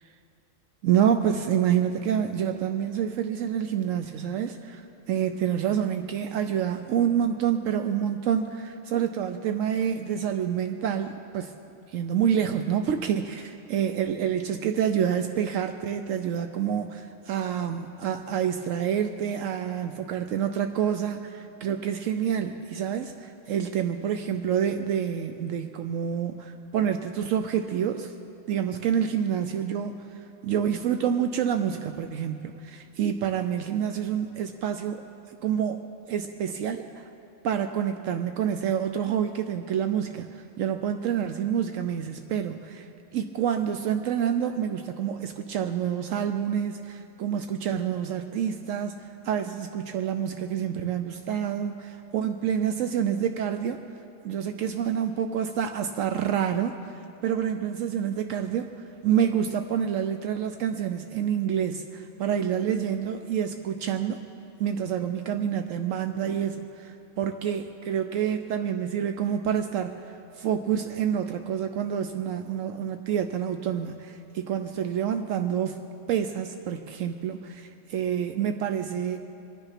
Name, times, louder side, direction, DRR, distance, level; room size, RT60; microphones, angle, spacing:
voice 1, 0.8-11.5 11.9-28.1 28.5-37.1 37.4-53.8 54.2-64.2 64.6-75.8 76.1-79.2, right 8 dB, 80° right, 7 dB, 1.0 m, -28 dB
25.0 x 9.8 x 5.8 m, 2.7 s
omnidirectional pair, 1.4 m